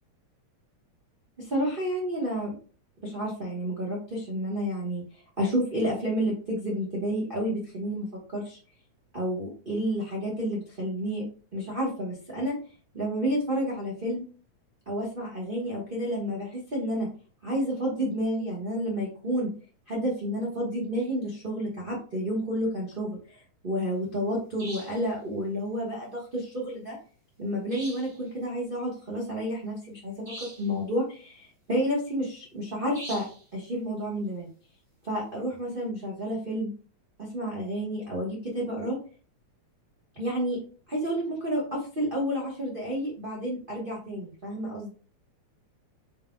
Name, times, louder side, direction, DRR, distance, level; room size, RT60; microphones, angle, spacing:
voice 1, 1.4-2.6 3.0-5.0 5.4-8.6 9.1-11.2 11.5-12.5 12.9-14.2 14.9-17.1 17.4-19.5 19.9-27.0 27.4-34.5 35.0-36.7 37.2-39.0 40.1-40.6 40.9-44.9, equal, 85° right, -5 dB, 0.4 m, -30 dB
sound 1, 24.6-25.1 27.7-28.2 30.3-30.8 32.9-33.4, right 1 dB, 20° right, 1.7 m, -42 dB
5.3 x 4.1 x 2.3 m, 0.39 s
omnidirectional pair, 3.4 m